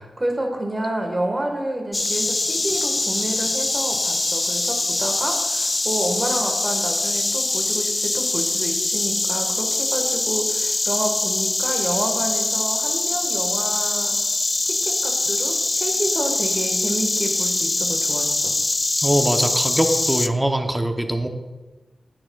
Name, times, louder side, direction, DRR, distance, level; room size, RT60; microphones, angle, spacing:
voice 1, 0.0-14.1 14.6-18.5, right 1 dB, 30° right, 2 dB, 1.5 m, -29 dB
Insect, 1.9-20.3, left 2 dB, 30° left, 0.3 m, -23 dB
voice 2, 19.0-21.3, right 1 dB, 10° right, 5 dB, 0.8 m, -22 dB
10.0 x 8.9 x 2.3 m, 1.2 s
wide cardioid pair, 90°, 0 cm